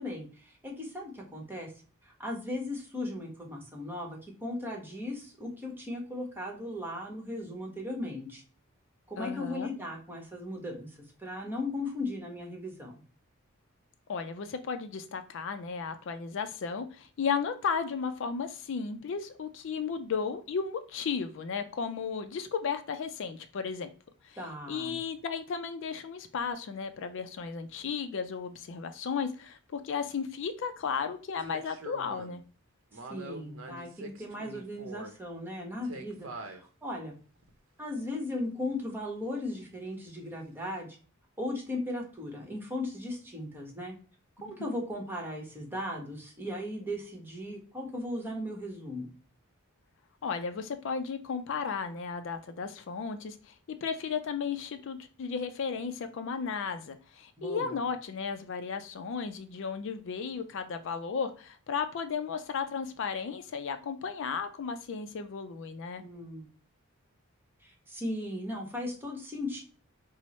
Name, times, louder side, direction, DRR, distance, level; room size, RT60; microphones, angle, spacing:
voice 1, 0.0-1.7 2.0-8.4 9.1-13.0 24.4-25.0 32.9-37.1 37.8-41.0 41.4-43.9 44.4-49.1 57.4-57.8 66.0-66.5 67.6-69.6, left 1 dB, 10° right, 1.0 m, -37 dB
voice 2, 9.2-9.7 14.1-23.9 24.2-24.4 24.7-32.4 50.2-66.0, left 6 dB, 60° left, 0.4 m, -34 dB
sound 1, 26.5-26.6 31.4-32.4 32.9-35.2 35.8-36.6 37.4-37.5, right 2 dB, 70° right, 0.7 m, -44 dB
4.5 x 2.0 x 4.1 m
head